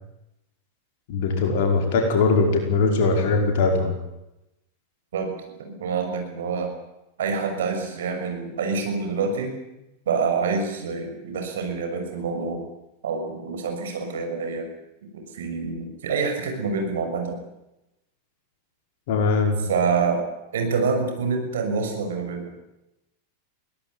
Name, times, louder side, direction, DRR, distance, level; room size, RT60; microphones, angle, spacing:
voice 1, 1.1-3.9 19.1-19.6, left 3 dB, 50° left, 3 dB, 5.2 m, -21 dB
voice 2, 5.1-6.7 7.2-9.6 10.1-12.6 13.0-14.7 15.1-17.4 19.7-20.2 20.5-22.5, right 5 dB, 60° right, 4 dB, 6.2 m, -26 dB
23.0 x 17.5 x 9.6 m, 0.91 s
figure-of-eight pair, 90°, 0 cm